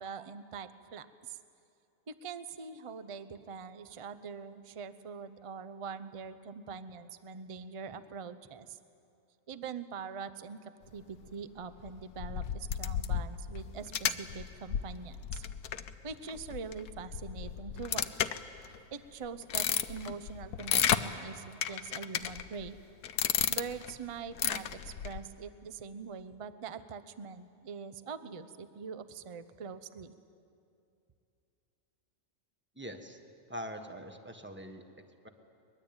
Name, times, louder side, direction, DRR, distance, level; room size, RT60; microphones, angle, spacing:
voice 1, 0.0-1.4 2.1-8.8 9.5-15.4 16.0-18.3 18.9-22.8 23.5-30.1, right 5 dB, 30° right, 12 dB, 0.6 m, -43 dB
sound 1, 11.8-18.8 19.2-21.0 21.6-22.7 23.0-23.9 24.3-25.2, left 9 dB, 90° left, 1.3 m, -33 dB
voice 2, 32.8-33.2 33.5-34.8 35.2-35.3, equal, 10° right, 5 dB, 1.4 m, -43 dB
23.0 x 21.0 x 8.9 m, 2.6 s
omnidirectional pair, 1.6 m